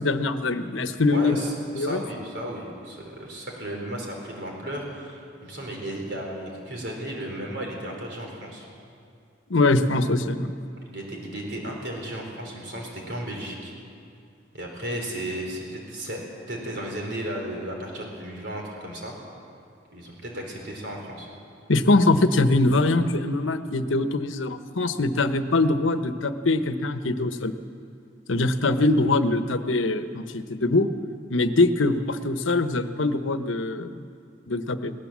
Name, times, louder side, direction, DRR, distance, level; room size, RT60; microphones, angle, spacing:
voice 1, 0.0-1.4 1.7-2.0 9.5-10.5 21.7-27.5 28.3-30.9 31.3-34.0 34.5-34.9, left 2 dB, 85° left, 10 dB, 1.0 m, -23 dB
voice 2, 1.1-8.7 10.9-13.7 14.5-16.2 16.5-19.1 19.9-21.3, right 1 dB, 60° right, 0 dB, 4.1 m, -34 dB
19.5 x 18.5 x 7.4 m, 2.4 s
head